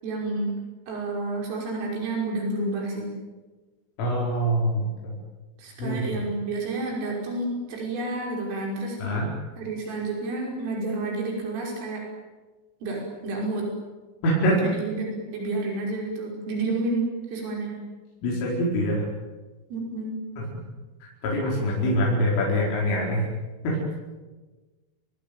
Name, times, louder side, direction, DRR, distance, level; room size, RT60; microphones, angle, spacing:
voice 1, 0.0-0.5 0.9-3.1 5.6-9.2 9.6-12.0 12.8-13.7 14.7-17.8 19.7-20.2, right 2 dB, 80° right, -1 dB, 8.2 m, -30 dB
voice 2, 4.0-5.2 5.8-6.0 9.0-9.3 14.2-14.7 18.2-19.0 21.2-23.3 23.6-23.8, equal, 80° left, -4 dB, 7.4 m, -24 dB
29.0 x 21.0 x 9.1 m, 1.3 s
omnidirectional pair, 5.7 m